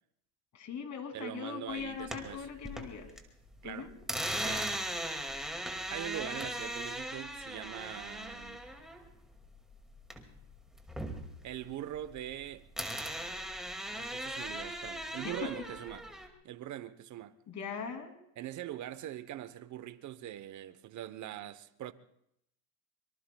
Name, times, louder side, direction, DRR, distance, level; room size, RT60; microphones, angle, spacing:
voice 1, 0.5-3.1 3.6-3.9 15.2-15.5 17.5-18.1, left 6 dB, 35° left, 2.8 m, -40 dB
voice 2, 1.1-2.5 3.6-3.9 4.4-4.7 5.9-8.6 11.4-12.6 13.9-16.1 16.4-17.4 18.4-21.9, right 12 dB, 40° right, 0.9 m, -42 dB
sound 1, 1.8-3.2 3.5-10.4 10.7-12.4 12.8-16.3, right 1 dB, ahead, 2.1 m, -38 dB
24.5 x 24.0 x 2.3 m
supercardioid pair, 110°, 48 cm